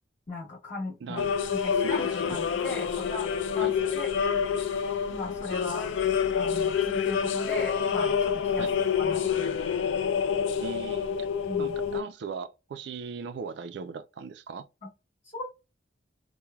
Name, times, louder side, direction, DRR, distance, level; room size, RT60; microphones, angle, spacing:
voice 1, 0.3-1.2 1.5-3.3 3.5-4.1 5.1-5.9 6.3-8.7 9.0-9.6 11.4-11.7 15.3-15.4, left 3 dB, 40° left, 1.3 m, -37 dB
sound 1, 1.2-12.0, left 7 dB, 75° left, 0.3 m, -27 dB
voice 2, 1.8-2.4 3.6-3.7 8.6-8.8 10.6-11.3 11.6-14.7, right 5 dB, 65° right, 0.3 m, -39 dB
3.0 x 2.1 x 2.3 m
head